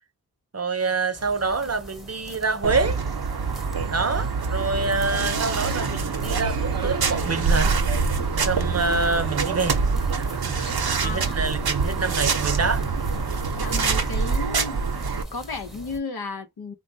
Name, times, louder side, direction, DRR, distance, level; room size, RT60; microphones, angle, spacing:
voice 1, 0.5-3.0 3.9-7.8 8.4-9.8 10.1-12.8, right 4 dB, 45° right, 0.6 m, -26 dB
sound 1, 1.1-16.0, right 1 dB, ahead, 0.7 m, -41 dB
sound 2, 2.6-15.2, right 4 dB, 80° right, 0.6 m, -25 dB
voice 2, 11.0-11.4 13.5-14.8 15.1-16.7, left 3 dB, 85° left, 0.7 m, -33 dB
3.3 x 2.1 x 2.6 m
wide cardioid pair, 40°, 37 cm